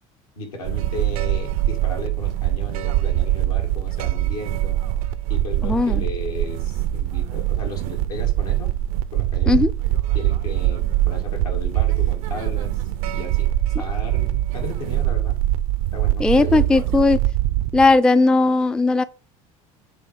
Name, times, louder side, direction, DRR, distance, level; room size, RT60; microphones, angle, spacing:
voice 1, 0.4-4.8 5.3-8.7 9.1-9.6 10.1-12.8 13.1-13.5 13.8-15.4 15.9-16.9, left 2 dB, 85° left, 2.1 m, -34 dB
sound 1, 0.6-18.0, right 14 dB, 75° right, 0.5 m, -23 dB
voice 2, 5.6-6.0 9.5-9.7 16.2-17.2 17.7-19.0, left 3 dB, 5° left, 0.3 m, -17 dB
7.6 x 3.3 x 4.8 m
hypercardioid pair, 75°, 19 cm